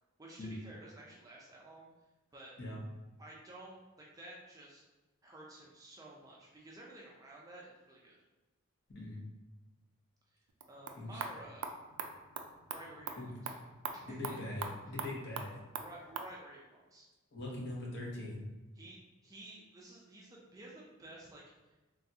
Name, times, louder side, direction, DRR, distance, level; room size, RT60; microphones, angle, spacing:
voice 1, 0.2-1.9 2.3-2.5 3.2-4.8 5.2-8.2 10.3-10.4 10.7-11.7 12.7-13.5 13.9-14.6 15.8-17.1 18.7-21.7, right 1 dB, 15° right, -4 dB, 0.4 m, -52 dB
voice 2, 8.9-9.2 11.0-11.2 13.2-13.3 14.1-15.6 17.3-18.4, left 1 dB, 55° left, -3 dB, 0.7 m, -42 dB
sound 1, 10.5-16.3, right 5 dB, 90° right, 0.3 m, -44 dB
3.3 x 2.3 x 2.7 m, 1.1 s
head